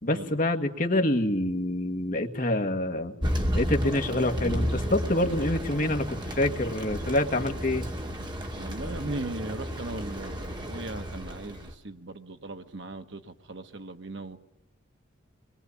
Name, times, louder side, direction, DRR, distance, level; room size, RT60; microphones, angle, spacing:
voice 1, 0.0-3.2 3.6-7.9, left 1 dB, 40° left, 5 dB, 1.8 m, -26 dB
Thunder, 3.2-11.7, equal, 20° right, 2.2 m, -32 dB
voice 2, 8.6-14.4, right 2 dB, 60° right, 7 dB, 1.4 m, -38 dB
26.0 x 22.0 x 8.6 m, 0.74 s
head